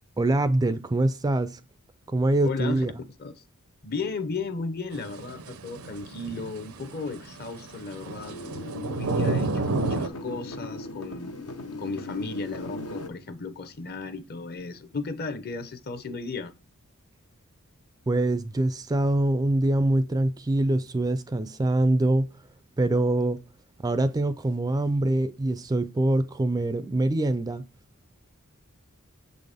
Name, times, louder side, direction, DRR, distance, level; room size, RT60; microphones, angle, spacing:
voice 1, 0.2-1.6 2.1-2.9 18.1-22.3 22.8-23.4 23.8-27.6, right 2 dB, 15° right, 0.3 m, -24 dB
voice 2, 2.4-2.9 3.2-3.4 3.8-8.4 8.9-11.3 11.8-16.5, left 3 dB, 45° left, 0.7 m, -35 dB
sound 1, 4.9-10.1, right 3 dB, 75° right, 0.6 m, -31 dB
sound 2, 8.0-13.1, left 2 dB, 80° left, 0.8 m, -38 dB
6.9 x 4.0 x 3.5 m
head